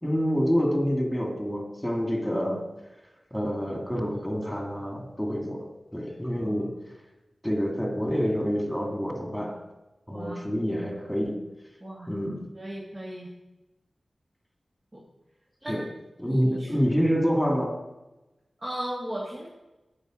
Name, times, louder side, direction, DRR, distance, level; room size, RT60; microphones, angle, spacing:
voice 1, 0.0-2.7 3.3-6.7 7.4-9.6 10.1-11.4 12.1-12.5 15.7-15.8 16.2-17.8, equal, 5° left, 1 dB, 2.5 m, -27 dB
voice 2, 10.1-10.9 11.8-12.1 12.5-13.3 14.9-15.0 15.6-15.9 16.2-16.8 18.6-19.5, right 1 dB, 35° right, -4 dB, 2.3 m, -37 dB
9.4 x 5.7 x 7.8 m, 1.0 s
cardioid pair, 55°, 0 cm